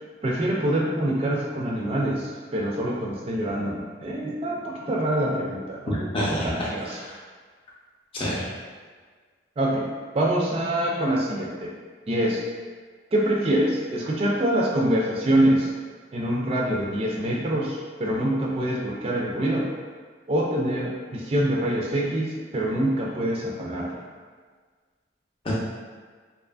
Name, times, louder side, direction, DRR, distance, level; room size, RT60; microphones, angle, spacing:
voice 1, 0.2-6.1 6.4-6.9 9.6-9.9 10.1-11.7 12.1-12.4 13.1-15.7 16.1-19.7 20.3-24.0, right 1 dB, 30° right, -3 dB, 0.3 m, -25 dB
voice 2, 5.9-7.2 8.1-8.5 25.4-25.5, equal, 30° left, -6 dB, 0.5 m, -28 dB
2.6 x 2.4 x 2.3 m, 1.5 s
head